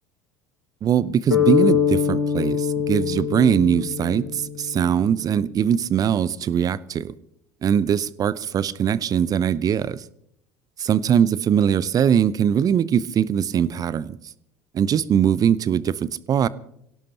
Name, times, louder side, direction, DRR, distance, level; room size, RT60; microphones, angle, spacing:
voice 1, 0.8-7.1 7.6-10.0 10.8-14.2 14.7-16.5, right 8 dB, 35° right, 19 dB, 0.7 m, -21 dB
sound 1, 1.3-5.2, left 8 dB, 80° left, 4.8 m, -23 dB
26.5 x 17.0 x 3.0 m, 0.73 s
figure-of-eight pair, 70°, 11 cm